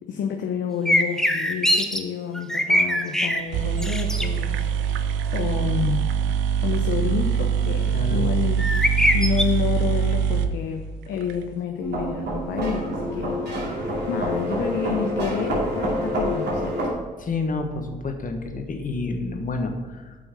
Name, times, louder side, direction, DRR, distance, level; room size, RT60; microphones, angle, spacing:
voice 1, 0.1-5.0 5.3-6.1 6.6-8.7 9.1-13.4 14.1-17.0, left 7 dB, 70° left, 4 dB, 0.8 m, -29 dB
sound 1, 0.9-2.0 2.3-3.4 3.8-4.3 8.6-9.4, left 1 dB, 5° left, 0.9 m, -21 dB
sound 2, 3.2-3.3 3.5-11.3, right 7 dB, 80° right, 0.5 m, -24 dB
voice 2, 7.9-8.2 9.0-9.1 17.2-20.2, left 3 dB, 45° left, 5 dB, 1.4 m, -29 dB
sound 3, 11.8-16.9, equal, 65° right, 2.5 m, -27 dB
7.8 x 5.8 x 5.3 m, 1.3 s
hypercardioid pair, 50°, 19 cm